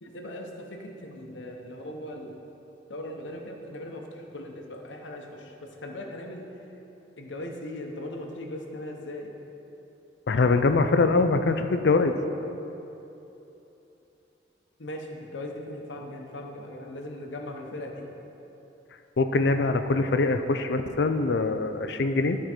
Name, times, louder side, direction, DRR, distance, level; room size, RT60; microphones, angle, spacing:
voice 1, 0.0-2.4 2.9-6.5 7.2-9.3 14.8-18.1, left 1 dB, 85° left, 2 dB, 0.9 m, -39 dB
voice 2, 10.3-12.1 19.2-22.4, left 3 dB, 60° left, 8 dB, 0.5 m, -23 dB
11.0 x 4.7 x 4.4 m, 3.0 s
head